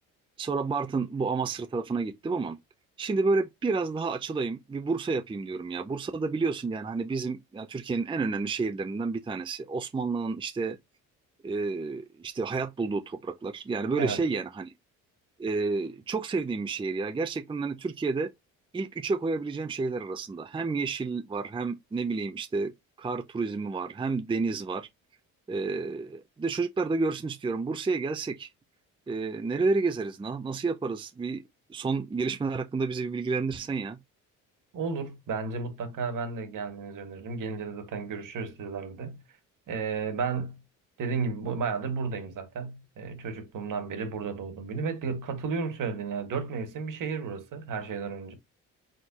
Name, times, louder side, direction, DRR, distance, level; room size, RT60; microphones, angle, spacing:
voice 1, 0.4-2.6 3.0-10.8 11.4-14.7 15.4-18.3 18.7-22.7 23.0-24.9 25.5-28.5 29.1-31.4 31.7-34.0, right 4 dB, 15° right, 0.5 m, -30 dB
voice 2, 34.7-39.2 39.7-40.6 41.0-48.3, right 5 dB, 60° right, 1.7 m, -33 dB
4.3 x 3.7 x 2.8 m
supercardioid pair, 75°, 35 cm